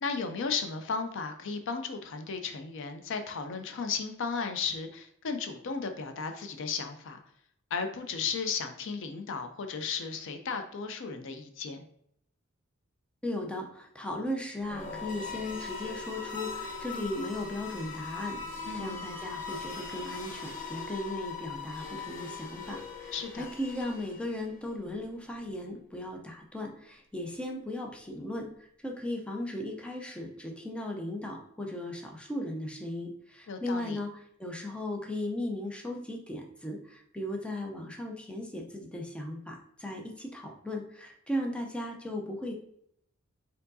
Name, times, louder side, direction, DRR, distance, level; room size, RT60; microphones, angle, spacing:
voice 1, 0.0-7.2 7.7-11.8 18.7-18.9 23.1-23.5 33.5-34.0, left 5 dB, 65° left, 7 dB, 0.5 m, -35 dB
voice 2, 13.2-34.1 34.4-42.5, left 1 dB, 5° left, 1 dB, 0.5 m, -37 dB
sound 1, 14.6-24.5, left 4 dB, 40° left, 0.8 m, -40 dB
4.5 x 3.7 x 2.6 m, 0.71 s
head